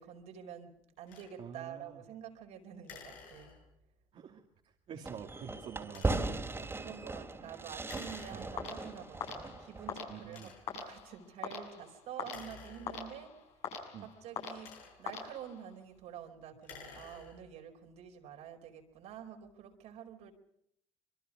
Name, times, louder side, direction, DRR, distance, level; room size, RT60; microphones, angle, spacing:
voice 1, 0.0-3.6 6.7-13.5 14.0-20.3, right 9 dB, 75° right, 3 dB, 4.8 m, -48 dB
sound 1, 1.1-1.4 2.8-3.9 5.8-6.4 7.8-8.9 9.5-9.6 10.3-10.9 12.2-13.4 14.3-15.2 16.5-17.6, left 5 dB, 90° left, 6.9 m, -53 dB
voice 2, 1.4-2.0 4.1-4.4 4.9-6.7 7.4-7.7 8.3-8.5 10.1-10.5 13.9-14.1, right 8 dB, 60° right, 1 dB, 2.6 m, -48 dB
Fireworks, 5.0-10.3, right 2 dB, 20° right, 3.0 m, -38 dB
sound 2, 8.6-15.8, left 6 dB, 70° left, 7.2 m, -44 dB
26.0 x 23.0 x 5.1 m, 0.70 s
supercardioid pair, 85°, 11 cm